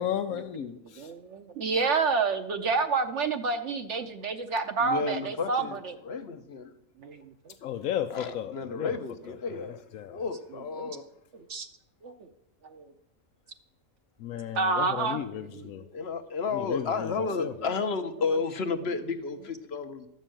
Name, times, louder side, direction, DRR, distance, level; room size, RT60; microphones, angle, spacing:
voice 1, 0.0-1.1 7.6-9.0 9.3-10.3 14.2-15.8 16.5-17.5, left 10 dB, 80° left, 6 dB, 1.1 m, -34 dB
voice 2, 1.0-6.0 7.0-7.5 10.8-11.0 11.3-11.7 12.0-12.3 12.6-12.9 14.5-15.2 15.5-15.9, right 4 dB, 60° right, 7 dB, 1.0 m, -29 dB
voice 3, 4.8-5.8 6.0-6.7 8.1-9.8 10.1-11.0 15.9-20.1, left 4 dB, 55° left, 10 dB, 1.0 m, -32 dB
13.0 x 5.4 x 8.9 m, 0.83 s
omnidirectional pair, 1.5 m